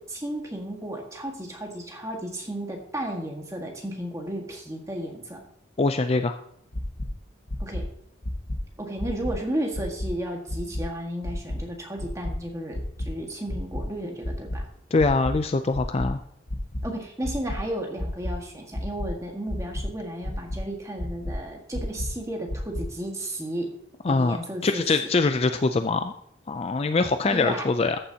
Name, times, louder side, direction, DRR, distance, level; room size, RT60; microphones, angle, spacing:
voice 1, 0.1-5.4 7.6-7.9 8.8-14.7 16.8-23.7 24.0-24.8 27.2-27.7, right 1 dB, 15° right, 0 dB, 1.7 m, -33 dB
voice 2, 5.8-6.4 14.9-16.2 24.0-24.4 24.6-26.1 26.5-28.0, left 3 dB, 30° left, 8 dB, 0.4 m, -23 dB
sound 1, 6.7-7.1 7.5-7.8 8.2-8.6 9.0-9.3 9.7-10.1 10.5-10.8 11.2-11.6 12.0-12.3 12.7-13.1 13.5-13.8 14.2-14.6 15.0-15.3 15.7-16.1 16.5-16.8 17.2-17.6 18.0-18.3 18.7-19.1 19.5-19.8 20.2-20.6 21.0-21.3 21.7-22.1 22.5-22.8, left 1 dB, 55° left, 1.2 m, -31 dB
14.0 x 7.1 x 2.9 m, 0.68 s
head